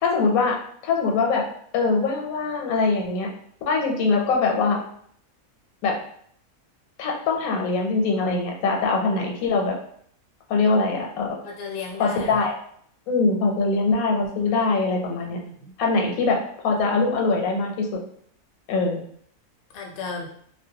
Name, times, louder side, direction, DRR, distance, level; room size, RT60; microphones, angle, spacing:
voice 1, 0.0-0.6 0.8-1.4 1.7-3.3 3.7-4.8 5.8-6.0 7.0-9.7 10.5-11.3 12.0-12.5 13.1-15.4 15.8-16.4 16.6-17.9 18.7-19.0, left 3 dB, 90° left, 0 dB, 1.1 m, -22 dB
voice 2, 11.4-12.5 14.5-15.7 19.7-20.3, left 4 dB, 60° left, 0 dB, 0.6 m, -36 dB
2.4 x 2.1 x 2.7 m, 0.63 s
omnidirectional pair, 1.5 m